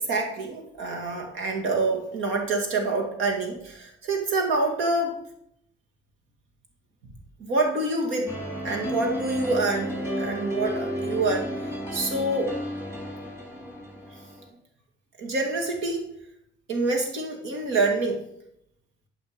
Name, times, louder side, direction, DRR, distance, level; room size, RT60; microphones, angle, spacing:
voice 1, 0.0-5.2 7.4-8.3 8.6-11.5 11.9-12.6 15.2-16.1 16.7-18.2, right 2 dB, 85° right, 2 dB, 2.3 m, -26 dB
sound 1, 8.3-14.5, equal, 10° right, 3.3 m, -32 dB
12.0 x 5.4 x 5.2 m, 0.74 s
cardioid pair, 90°, 20 cm